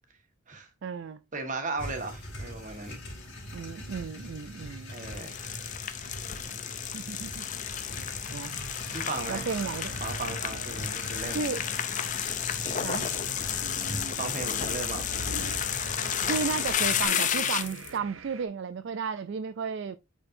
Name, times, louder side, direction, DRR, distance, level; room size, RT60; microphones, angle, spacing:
voice 1, 0.8-1.2 3.5-5.0 6.9-7.5 7.9-8.6 9.3-10.0 11.3-12.0 12.8-13.1 16.3-20.0, right 5 dB, 55° right, 0.3 m, -34 dB
voice 2, 1.3-3.1 4.9-5.5 8.2-8.4 8.9-9.5 10.0-11.5 14.2-15.0, right 3 dB, 35° right, 1.5 m, -36 dB
sound 1, 1.8-17.1, left 1 dB, 55° left, 2.5 m, -41 dB
sound 2, 4.9-17.9, left 9 dB, 35° left, 0.5 m, -32 dB
sound 3, 8.2-18.5, right 3 dB, 70° right, 0.7 m, -44 dB
8.6 x 4.4 x 2.6 m
head